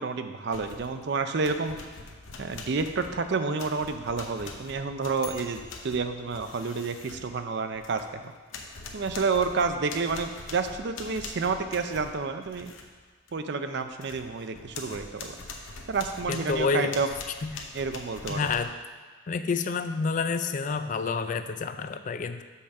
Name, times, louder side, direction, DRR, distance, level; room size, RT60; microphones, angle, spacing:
voice 1, 0.0-1.8 2.4-8.2 8.9-12.7 13.3-15.4 15.9-17.1 17.7-18.5, right 4 dB, 55° right, 8 dB, 0.5 m, -29 dB
sound 1, 0.5-1.0 1.4-8.2 8.5-12.9 13.3-13.4 13.8-18.6, left 3 dB, 75° left, 0.8 m, -43 dB
voice 2, 16.3-16.9 17.4-17.6 18.3-18.7 19.3-22.4, left 5 dB, 40° left, 9 dB, 0.3 m, -29 dB
5.5 x 5.0 x 6.6 m, 1.5 s
head